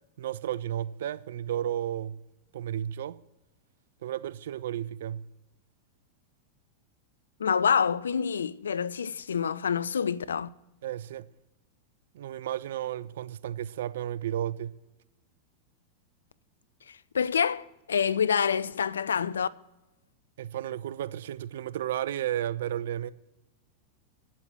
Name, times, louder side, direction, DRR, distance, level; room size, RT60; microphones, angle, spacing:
voice 1, 0.2-2.2 2.5-3.2 4.0-5.3 10.8-11.3 12.1-14.7 20.4-23.1, right 11 dB, 65° right, 0.4 m, -33 dB
voice 2, 7.4-10.5 17.1-19.5, left 7 dB, 80° left, 0.4 m, -27 dB
8.7 x 8.3 x 7.7 m
hypercardioid pair, 95°, 0 cm